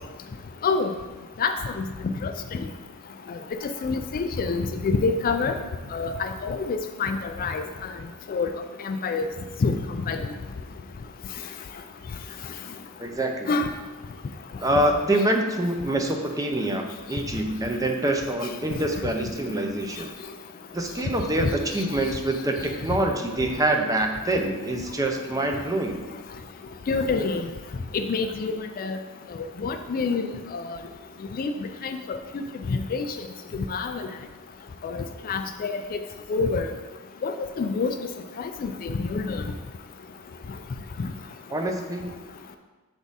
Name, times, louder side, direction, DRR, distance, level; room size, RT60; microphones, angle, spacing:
voice 1, 1.4-1.8 2.2-2.3 3.8-5.6 5.9-7.6 8.3-8.5 8.9-9.3 9.6-9.8 10.1-10.2 13.5-13.7 26.9-27.4 27.9-29.0 29.6-30.3 30.5-30.8 31.4-31.5 31.8-32.4 32.7-33.0 33.7-34.0 34.8-36.0 36.3-36.7 37.2-37.9 38.4-39.4 41.0-41.1, left 4 dB, 40° left, 7 dB, 0.3 m, -26 dB
voice 2, 13.0-13.5 14.6-20.1 20.7-26.0 41.5-42.2, right 1 dB, 15° right, 3 dB, 0.5 m, -25 dB
7.2 x 3.5 x 4.0 m, 1.2 s
head